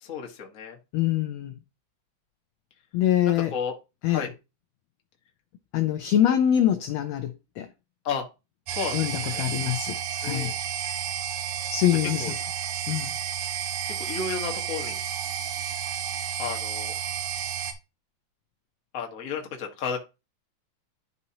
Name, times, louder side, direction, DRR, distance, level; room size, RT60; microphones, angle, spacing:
voice 1, 0.0-0.8 3.5-3.7 4.0-4.3 8.0-8.2 8.7-9.5 10.2-10.5 12.2-12.3 13.9-15.0 16.4-16.9 18.9-20.0, left 6 dB, 55° left, 0.9 m, -32 dB
voice 2, 0.9-1.6 2.9-3.5 4.0-4.3 5.7-7.7 8.9-10.5 11.7-12.3 12.9-13.1, left 11 dB, 80° left, 1.5 m, -24 dB
sound 1, 8.7-17.7, right 9 dB, 90° right, 2.4 m, -31 dB
12.0 x 4.2 x 2.8 m
omnidirectional pair, 3.6 m